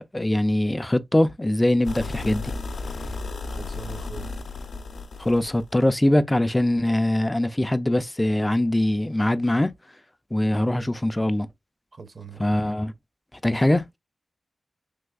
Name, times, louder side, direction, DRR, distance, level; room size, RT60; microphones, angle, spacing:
voice 1, 0.0-2.5 5.2-9.7 10.3-11.5 12.4-12.9 13.4-13.8, left 1 dB, 15° left, 0.3 m, -22 dB
sound 1, 1.8-5.8, left 3 dB, 80° left, 0.5 m, -34 dB
voice 2, 3.4-4.3 11.9-12.6, right 5 dB, 45° right, 0.6 m, -41 dB
3.3 x 3.0 x 2.3 m
wide cardioid pair, 85°, 0 cm